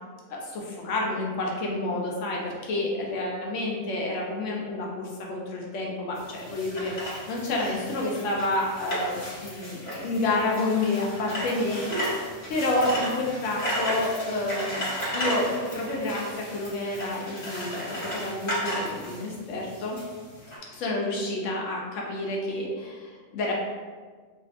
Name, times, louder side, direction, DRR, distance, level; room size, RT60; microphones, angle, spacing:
voice 1, 0.3-6.9 7.3-12.1 12.5-14.8 15.1-20.0 20.7-23.5, left 2 dB, 65° left, -2 dB, 0.8 m, -29 dB
sound 1, 6.1-20.6, equal, 40° left, 1.1 m, -34 dB
2.6 x 2.5 x 2.4 m, 1.5 s
omnidirectional pair, 1.6 m